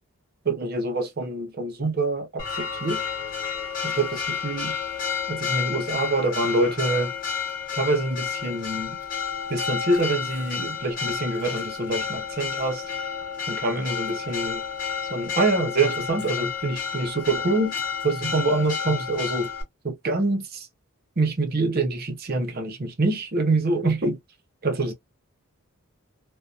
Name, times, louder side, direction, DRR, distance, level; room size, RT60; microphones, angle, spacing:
voice 1, 0.4-3.0 3.8-4.8 5.3-7.1 7.7-9.0 9.5-12.8 13.5-14.6 15.1-17.7 18.0-19.5 19.8-20.7 21.2-24.2 24.6-24.9, right 2 dB, 45° right, 0.7 m, -25 dB
Church bell, 2.4-19.6, left 7 dB, 40° left, 1.0 m, -31 dB
2.6 x 2.2 x 2.4 m
head